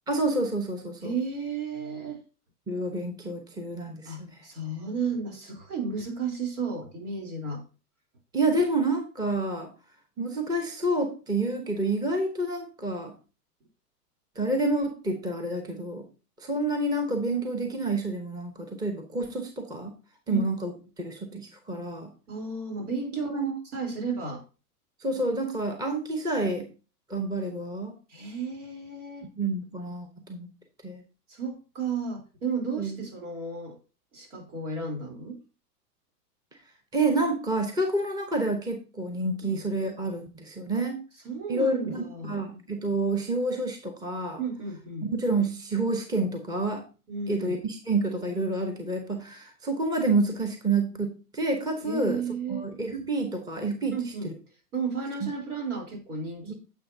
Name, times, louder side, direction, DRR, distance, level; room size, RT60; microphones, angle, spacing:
voice 1, 0.1-1.1 2.7-4.4 4.8-4.9 8.3-9.7 10.2-13.1 14.4-16.0 16.4-19.9 20.3-22.1 23.1-23.6 25.0-26.7 27.1-27.9 29.4-30.5 30.8-31.0 32.8-33.1 36.9-41.0 41.5-44.4 45.0-46.8 47.3-52.2 52.5-54.0 54.2-54.3 55.2-55.3 56.4-56.5, right 2 dB, 10° right, 5 dB, 1.0 m, -28 dB
voice 2, 1.0-2.2 4.0-7.6 20.3-20.4 22.3-24.4 28.1-29.3 31.3-33.7 34.1-35.4 39.4-39.6 40.7-40.8 41.2-42.4 44.4-45.1 47.1-47.6 51.8-52.7 53.9-54.3 54.7-56.5, right 4 dB, 70° right, 2 dB, 3.8 m, -33 dB
9.4 x 7.4 x 2.8 m, 0.33 s
hypercardioid pair, 130°, 48 cm